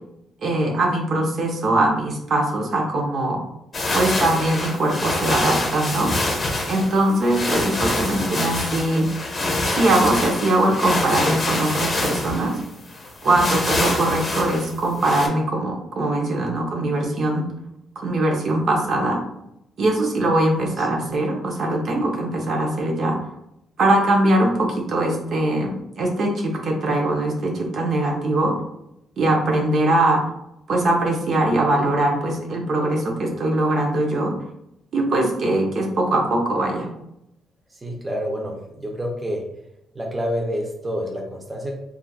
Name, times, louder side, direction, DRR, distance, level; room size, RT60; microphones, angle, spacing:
voice 1, 0.4-3.4 3.9-6.1 6.7-9.1 9.7-12.6 13.2-17.5 18.0-19.2 19.8-23.2 23.8-28.5 29.2-30.2 30.7-34.3 34.9-36.9, right 1 dB, 60° right, 0 dB, 0.6 m, -21 dB
sound 1, 3.7-15.3, left 2 dB, 35° left, 0.7 m, -25 dB
voice 2, 37.8-39.4 39.9-41.8, equal, 20° right, 0 dB, 0.6 m, -28 dB
3.0 x 2.4 x 2.3 m, 0.80 s
cardioid pair, 90°, 0 cm